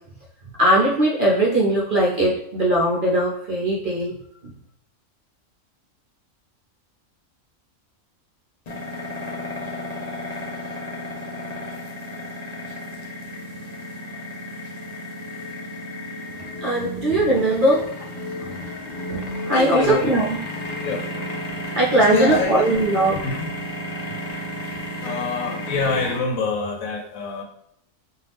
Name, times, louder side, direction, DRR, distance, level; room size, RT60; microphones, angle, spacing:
voice 1, 0.6-4.2 4.4-4.5 16.6-17.8 18.3-18.6 19.1-20.4 21.8-23.2, right 1 dB, 60° right, -5 dB, 0.6 m, -20 dB
sound 1, 8.7-26.2, left 1 dB, 50° left, 0.5 m, -32 dB
voice 2, 19.5-20.2 20.8-21.0 22.1-22.7 23.1-23.5 25.0-27.4, left 4 dB, 85° left, 3 dB, 1.0 m, -25 dB
2.7 x 2.3 x 3.3 m, 0.74 s
omnidirectional pair, 1.4 m